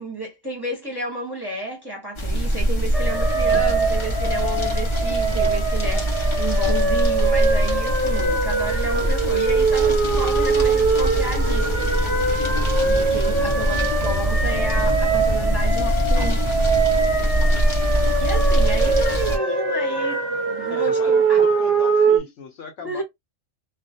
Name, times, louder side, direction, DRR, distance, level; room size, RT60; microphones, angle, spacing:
voice 1, 0.0-11.9 12.8-16.4 18.2-21.4 22.0-22.2 22.8-23.0, right 2 dB, 20° right, 0.8 m, -31 dB
sound 1, 2.2-19.4, equal, 35° left, 0.5 m, -23 dB
sound 2, 2.9-22.2, right 4 dB, 45° right, 0.4 m, -22 dB
voice 2, 12.8-13.6 17.2-17.6 20.7-23.0, left 6 dB, 70° left, 0.9 m, -38 dB
2.3 x 2.1 x 2.6 m
omnidirectional pair, 1.3 m